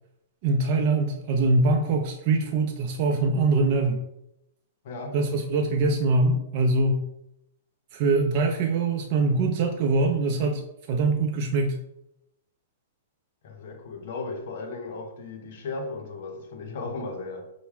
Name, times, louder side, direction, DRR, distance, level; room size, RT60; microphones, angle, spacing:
voice 1, 0.4-4.0 5.1-7.1 7.9-11.8, right 3 dB, 45° right, 0.4 m, -23 dB
voice 2, 4.8-5.2 13.4-17.5, left 3 dB, 60° left, 0.6 m, -36 dB
4.3 x 2.0 x 3.1 m
hypercardioid pair, 130°, 0 cm